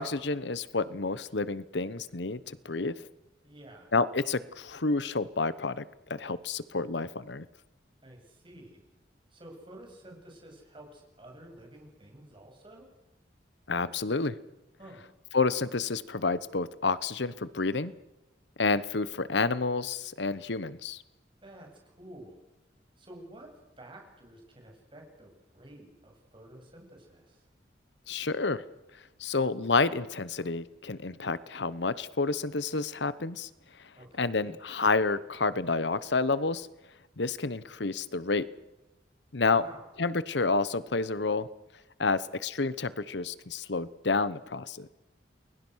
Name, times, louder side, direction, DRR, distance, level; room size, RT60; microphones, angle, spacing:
voice 1, 0.0-2.9 3.9-5.8 6.1-7.4 13.7-14.4 15.3-17.9 18.6-21.0 28.1-28.6 29.2-33.5 34.2-36.7 37.2-38.5 39.3-39.6 40.0-41.5 42.0-44.9, left 3 dB, 70° left, 16 dB, 1.0 m, -29 dB
voice 2, 3.4-3.9 8.0-8.8 9.3-12.9 14.8-15.1 21.4-22.4 23.0-23.5 23.8-27.5 33.9-34.5 39.4-39.9, right 1 dB, 30° right, 2 dB, 7.6 m, -51 dB
29.5 x 22.0 x 6.4 m, 0.99 s
head